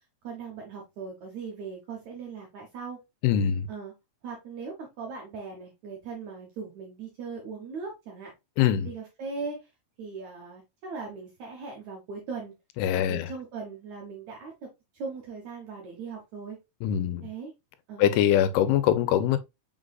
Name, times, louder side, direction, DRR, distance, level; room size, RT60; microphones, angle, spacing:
voice 1, 0.2-3.0 3.7-3.9 4.2-8.3 8.8-9.7 10.0-12.5 13.0-14.7 14.9-16.6 17.2-17.5 17.9-18.1, right 4 dB, 70° right, 1.8 m, -39 dB
voice 2, 3.2-3.7 8.6-8.9 12.8-13.3 16.8-17.2 18.0-19.4, left 10 dB, 85° left, 2.5 m, -23 dB
5.8 x 3.8 x 2.3 m
omnidirectional pair, 4.5 m